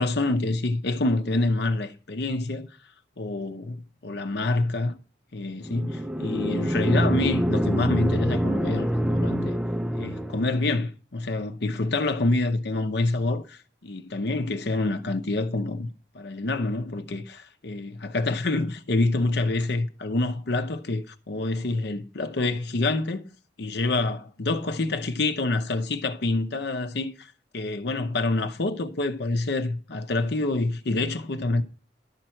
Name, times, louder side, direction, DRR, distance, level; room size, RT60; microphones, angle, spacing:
voice 1, 0.0-2.7 3.2-5.0 5.3-9.6 9.9-15.9 16.1-23.3 23.6-31.6, left 2 dB, 65° left, 0.8 m, -27 dB
sound 1, 5.7-10.6, equal, 5° right, 0.4 m, -26 dB
11.5 x 4.4 x 7.6 m
head